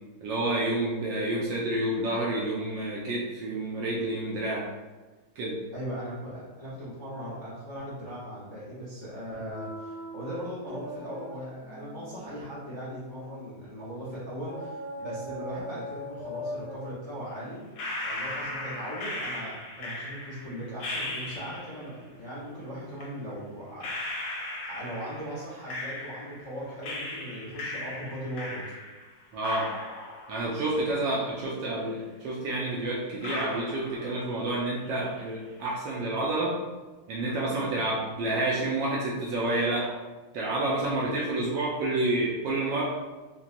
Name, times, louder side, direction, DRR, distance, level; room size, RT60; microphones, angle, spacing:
voice 1, 0.2-4.7 5.4-5.6 29.3-29.7 30.3-36.6 37.1-39.9 40.3-43.0, right 2 dB, 75° right, -4 dB, 1.1 m, -29 dB
voice 2, 5.7-17.6 18.0-24.3 24.6-28.7, equal, 45° left, -10 dB, 0.3 m, -39 dB
sound 1, 9.5-13.7 14.4-19.2, left 1 dB, 50° right, 0.9 m, -41 dB
sound 2, 17.8-21.9 23.0-23.1 23.8-26.5 26.8-29.1 29.4-31.5 31.8-31.9 32.6-32.7 33.2-34.5 34.8-35.4, left 2 dB, 70° left, 1.4 m, -37 dB
4.0 x 2.2 x 2.5 m, 1.2 s
omnidirectional pair, 2.4 m